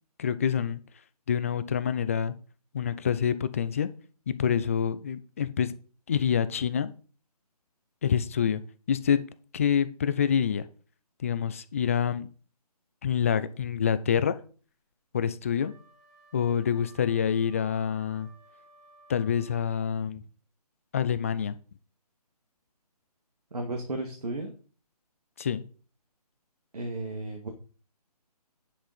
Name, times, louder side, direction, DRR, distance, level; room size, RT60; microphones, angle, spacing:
voice 1, 0.2-0.8 1.3-2.3 2.7-3.9 4.3-5.7 6.1-6.9 8.0-8.6 8.9-9.2 9.5-10.7 11.2-12.3 13.0-14.3 15.1-15.7 16.3-18.3 19.1-20.2 20.9-21.6 25.4-25.7, left 8 dB, 20° left, 0.4 m, -26 dB
Wind instrument woodwind instrument, 15.5-20.0, right 2 dB, 15° right, 2.2 m, -58 dB
voice 2, 23.5-24.5 26.7-27.5, right 2 dB, 75° right, 2.1 m, -34 dB
10.0 x 5.9 x 4.2 m
figure-of-eight pair, 150°, 20 cm